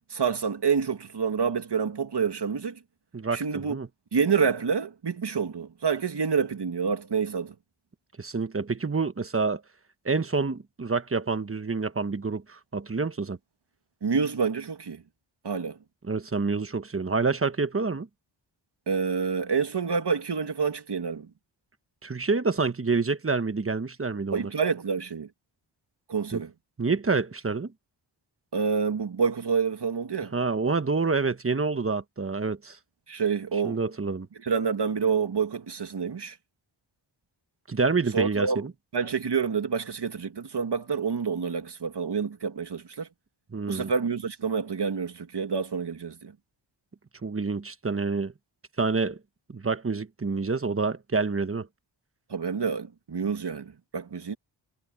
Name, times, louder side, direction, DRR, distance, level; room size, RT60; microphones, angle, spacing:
voice 1, 0.0-2.8 3.3-3.8 4.1-7.5 14.0-15.0 15.4-15.8 18.9-21.3 24.3-25.3 26.1-26.5 28.5-30.3 33.1-33.8 34.4-36.4 38.1-38.6 38.9-43.1 43.7-46.3 52.3-54.4, right 6 dB, 60° right, 2.2 m, -28 dB
voice 2, 3.1-3.9 8.2-9.6 10.0-13.4 16.0-18.1 22.0-24.5 26.3-26.4 26.8-27.7 30.3-32.8 33.6-34.3 37.7-38.7 43.5-43.9 47.2-48.3 48.8-49.2 49.5-51.7, right 4 dB, 30° right, 1.2 m, -27 dB
wide cardioid pair, 80°, 47 cm